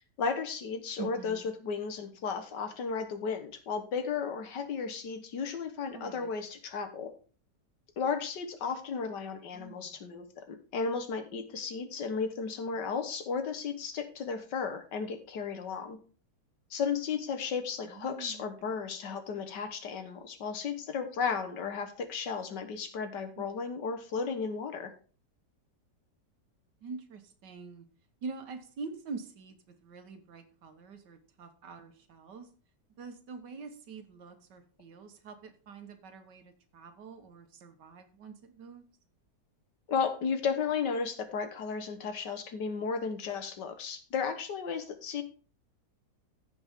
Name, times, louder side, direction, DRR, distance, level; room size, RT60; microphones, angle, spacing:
voice 1, 0.2-7.1 8.0-16.0 16.7-24.9 39.9-45.2, left 5 dB, 85° left, 7 dB, 1.9 m, -34 dB
voice 2, 1.0-1.5 5.9-6.3 9.5-10.0 17.8-18.8 23.4-23.5 26.8-27.9 28.2-32.5 33.0-38.8, right 4 dB, 90° right, 7 dB, 1.9 m, -45 dB
15.5 x 5.2 x 3.6 m, 0.39 s
omnidirectional pair, 1.8 m